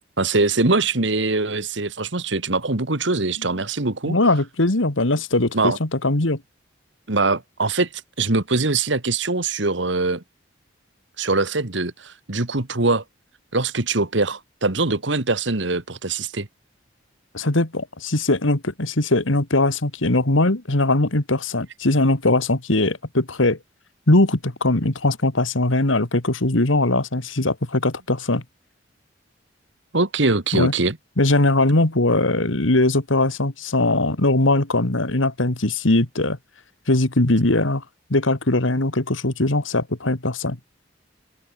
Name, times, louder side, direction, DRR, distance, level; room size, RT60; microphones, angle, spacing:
voice 1, 0.2-4.2 5.5-5.8 7.1-7.9 8.2-10.2 11.2-13.0 13.5-16.5 29.9-31.0, right 3 dB, 75° right, 1.9 m, -22 dB
voice 2, 4.1-6.4 17.3-23.6 24.1-28.4 30.5-30.7 31.2-36.4 36.9-37.8 38.1-40.6, left 2 dB, 90° left, 2.3 m, -20 dB
head